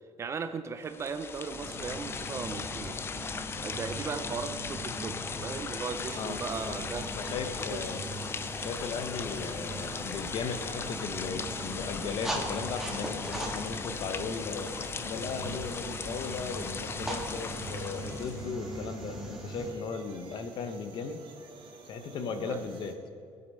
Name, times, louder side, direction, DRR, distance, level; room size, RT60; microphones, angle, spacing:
voice 1, 0.2-3.0 3.6-7.1 7.7-7.9 22.3-22.7, right 5 dB, 30° right, 10 dB, 0.6 m, -37 dB
sound 1, 0.8-18.5, left 5 dB, 25° left, 0.5 m, -38 dB
sound 2, 1.5-19.7, right 1 dB, 5° right, 1.7 m, -40 dB
sound 3, 6.0-22.9, right 4 dB, 55° right, 1.9 m, -51 dB
voice 2, 6.2-6.9 7.2-8.0 8.6-14.7 15.0-21.2 21.9-22.9, left 5 dB, 50° left, 8 dB, 1.1 m, -37 dB
20.5 x 8.0 x 5.5 m, 2.5 s
cardioid pair, 175°, 10 cm